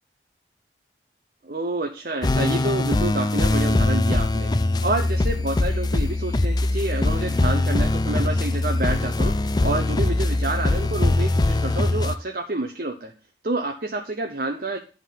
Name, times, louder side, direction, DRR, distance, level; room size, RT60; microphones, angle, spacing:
voice 1, 1.4-4.5 4.8-13.1 13.4-14.8, right 2 dB, 55° right, 4 dB, 0.8 m, -28 dB
sound 1, 2.2-12.2, left 2 dB, 25° left, 0.4 m, -22 dB
11.0 x 3.7 x 7.3 m, 0.35 s
head